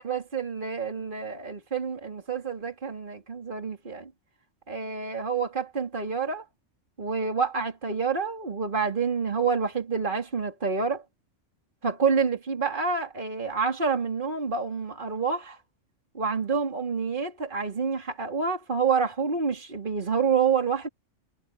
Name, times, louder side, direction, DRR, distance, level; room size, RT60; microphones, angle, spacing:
voice 1, 0.0-4.1 4.7-6.4 7.0-11.0 11.8-15.6 16.1-20.9, right 5 dB, 40° right, 3.0 m, -28 dB
omnidirectional pair, 1.3 m